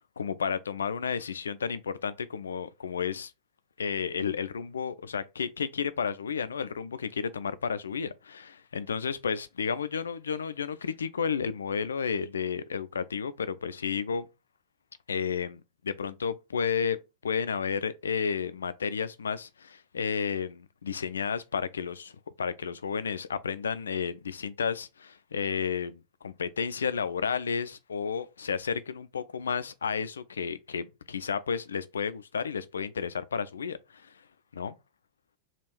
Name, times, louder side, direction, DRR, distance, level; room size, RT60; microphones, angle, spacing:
voice 1, 0.2-3.3 3.8-14.3 15.1-17.0 17.2-34.2 34.5-34.7, left 6 dB, 70° left, 0.4 m, -32 dB
3.5 x 2.4 x 4.4 m
figure-of-eight pair, 90°, 0 cm